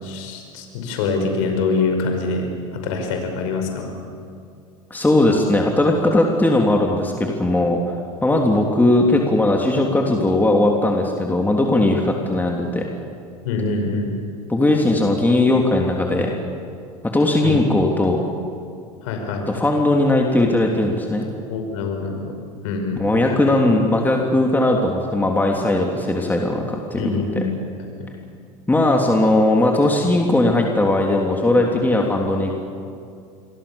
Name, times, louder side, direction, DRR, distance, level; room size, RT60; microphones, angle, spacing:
voice 1, 0.0-2.5 2.7-3.9 13.4-14.1 17.4-17.6 19.0-19.5 21.5-22.3 22.6-23.0 27.0-27.5, left 4 dB, 70° left, 4 dB, 5.5 m, -24 dB
voice 2, 4.9-7.9 8.2-12.9 14.5-16.3 17.0-18.2 19.4-21.2 23.0-27.4 28.7-32.5, left 2 dB, 10° left, 1 dB, 3.3 m, -18 dB
28.5 x 23.0 x 7.2 m, 2.4 s
hypercardioid pair, 85°, 17 cm